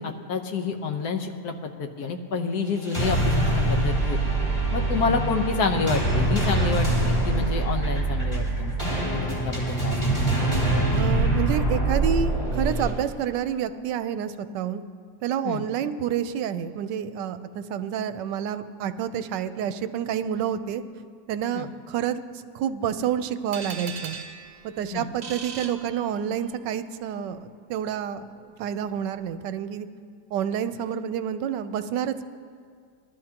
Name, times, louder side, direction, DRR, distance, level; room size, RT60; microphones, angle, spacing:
voice 1, 0.0-4.2 4.7-8.7 9.1-10.2 15.4-15.6 21.5-21.7 24.9-25.1, left 4 dB, 65° left, 5 dB, 1.4 m, -28 dB
sound 1, 2.7-12.9, right 2 dB, 15° left, 3.3 m, -24 dB
voice 2, 10.9-14.8 15.2-20.8 21.3-22.2 22.5-24.2 24.6-29.9 30.3-32.2, right 9 dB, 90° right, 11 dB, 1.3 m, -29 dB
sound 2, 23.5-26.5, right 5 dB, 50° right, 0.8 m, -39 dB
20.5 x 12.5 x 2.9 m, 2.1 s
omnidirectional pair, 1.9 m